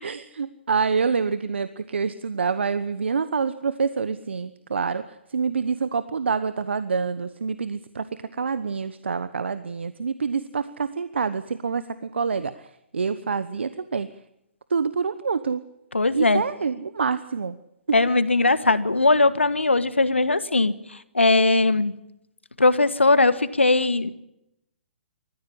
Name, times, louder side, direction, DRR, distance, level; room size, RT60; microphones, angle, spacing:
voice 1, 0.0-8.1 8.3-14.1 14.7-15.6 16.1-17.6 17.9-18.0, right 5 dB, 75° right, 13 dB, 1.1 m, -27 dB
voice 2, 15.9-16.4 17.9-20.7 21.1-21.9 22.6-24.1, left 3 dB, 90° left, 13 dB, 1.6 m, -19 dB
27.0 x 15.0 x 10.0 m, 0.86 s
figure-of-eight pair, 130°, 6 cm